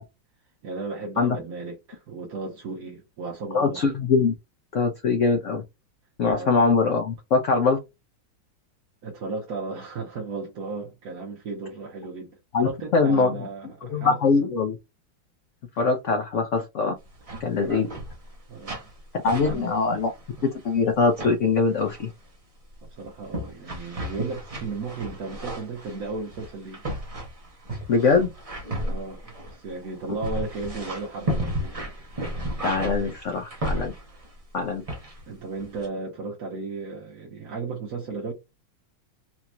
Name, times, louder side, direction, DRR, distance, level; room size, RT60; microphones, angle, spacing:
voice 1, 0.6-3.9 6.3-6.6 9.0-14.2 17.6-17.9 18.5-18.8 19.4-19.7 22.8-26.8 28.8-31.9 35.3-38.3, right 3 dB, 55° right, 1.2 m, -35 dB
voice 2, 3.5-4.3 4.7-5.6 6.2-7.8 12.5-13.5 13.8-14.7 15.8-16.9 17.4-17.9 19.2-20.1 20.6-22.1 27.9-28.3 32.6-33.9 34.5-34.8, left 4 dB, 75° left, 0.6 m, -22 dB
sound 1, 17.0-17.4 17.7-18.4 18.6-19.0 19.2-20.6 21.0-21.3 21.8-22.1 22.7-34.3 34.9-35.3 35.6-35.9, right 1 dB, 30° right, 0.7 m, -33 dB
4.1 x 2.9 x 2.3 m
omnidirectional pair, 2.1 m